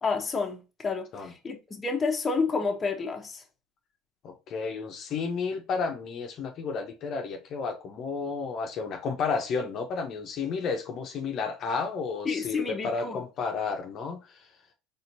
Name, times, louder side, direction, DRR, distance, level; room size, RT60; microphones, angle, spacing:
voice 1, 0.0-3.4 12.2-13.2, left 4 dB, 25° left, 1.0 m, -30 dB
voice 2, 4.2-14.4, left 5 dB, 50° left, 0.9 m, -32 dB
4.3 x 3.6 x 2.7 m
hypercardioid pair, 85°, 0 cm